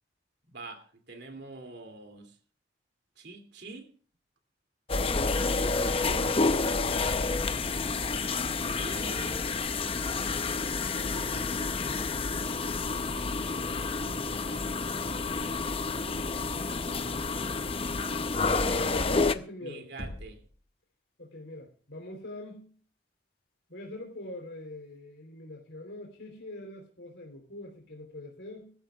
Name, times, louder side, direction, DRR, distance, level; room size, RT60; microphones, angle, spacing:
voice 1, 0.5-2.3 3.2-3.9 5.5-6.3 8.8-9.6 10.9-12.1 12.4-13.9 16.0-17.3 19.6-20.4, right 2 dB, 65° right, 5 dB, 2.8 m, -45 dB
sound 1, 4.9-19.3, left 3 dB, 30° left, 0.7 m, -29 dB
voice 2, 18.4-19.9 21.2-22.7 23.7-28.7, left 2 dB, 75° left, 0 dB, 3.6 m, -43 dB
Knock, 20.0-20.6, left 1 dB, 50° left, 2.0 m, -41 dB
23.5 x 14.5 x 2.4 m, 0.43 s
head